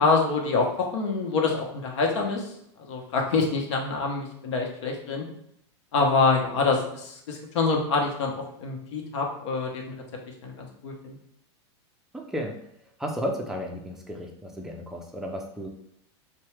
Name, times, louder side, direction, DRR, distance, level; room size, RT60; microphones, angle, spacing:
voice 1, 0.0-2.5 2.9-5.2 5.9-9.9 10.4-11.2, left 4 dB, 75° left, 1 dB, 0.8 m, -26 dB
voice 2, 12.1-12.6 13.0-15.7, equal, ahead, 0 dB, 0.4 m, -33 dB
2.8 x 2.2 x 3.2 m, 0.73 s
supercardioid pair, 140°, 15 cm